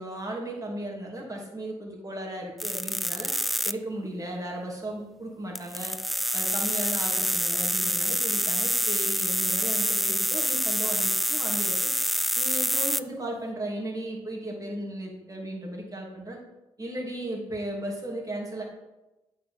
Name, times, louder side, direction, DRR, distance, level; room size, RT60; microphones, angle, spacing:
voice 1, 0.0-3.3 3.6-6.0 6.3-11.9 12.3-16.4 16.8-18.6, right 1 dB, 25° right, -2 dB, 3.0 m, -35 dB
sound 1, 2.6-3.7 5.5-13.0, equal, ahead, 0.3 m, -27 dB
8.1 x 5.0 x 5.7 m, 1.0 s
hypercardioid pair, 40°, 13 cm